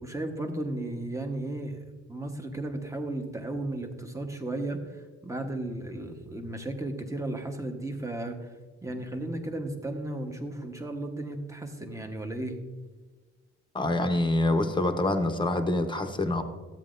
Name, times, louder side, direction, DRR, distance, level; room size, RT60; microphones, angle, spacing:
voice 1, 0.0-1.8 2.1-8.5 8.8-12.6, right 1 dB, 10° right, 4 dB, 1.1 m, -34 dB
voice 2, 13.7-16.4, left 2 dB, 15° left, 6 dB, 0.9 m, -26 dB
13.0 x 8.3 x 2.6 m, 1.3 s
cardioid pair, 90°, 30 cm